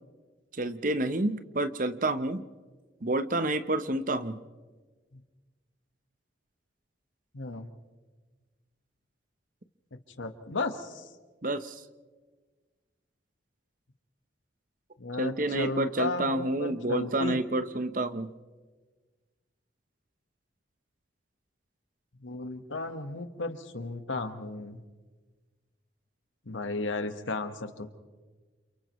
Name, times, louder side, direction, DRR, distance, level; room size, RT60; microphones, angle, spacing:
voice 1, 0.5-2.4 3.0-4.4 11.4-11.8 15.2-18.3, right 2 dB, 45° right, 10 dB, 0.9 m, -29 dB
voice 2, 7.3-7.7 10.2-11.1 15.0-17.4 22.2-24.8 26.5-27.9, left 3 dB, 85° left, 7 dB, 1.4 m, -34 dB
29.5 x 28.0 x 3.1 m, 1.4 s
head